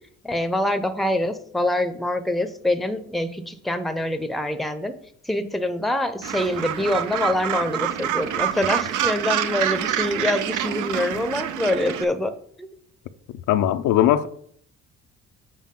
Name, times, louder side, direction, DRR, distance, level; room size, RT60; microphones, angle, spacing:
voice 1, 0.2-5.0 5.2-12.3 12.6-12.7, left 1 dB, ahead, 0.6 m, -25 dB
Gull seagull, 6.2-12.0, right 10 dB, 80° right, 0.6 m, -26 dB
voice 2, 13.5-14.3, left 12 dB, 80° left, 0.5 m, -19 dB
7.4 x 4.8 x 3.7 m
cardioid pair, 90°, 30 cm